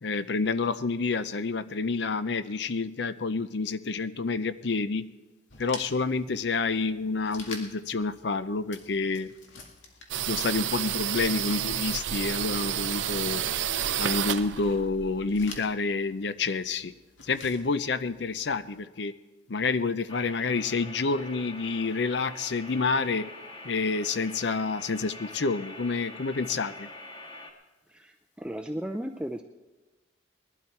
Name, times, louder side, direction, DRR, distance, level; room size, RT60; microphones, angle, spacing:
voice 1, 0.0-5.1 5.6-9.3 10.3-13.4 14.0-16.9 17.2-19.1 19.5-23.3 23.6-26.9, left 4 dB, 65° left, 14 dB, 0.6 m, -28 dB
sound 1, 5.5-18.8, left 4 dB, 90° left, 2.0 m, -49 dB
sound 2, 10.1-15.6, right 10 dB, 75° right, 0.6 m, -30 dB
sound 3, 20.1-27.5, left 2 dB, 25° left, 1.7 m, -44 dB
voice 2, 27.9-29.4, right 1 dB, 5° right, 5 dB, 0.4 m, -35 dB
20.0 x 12.0 x 4.6 m, 1.2 s
head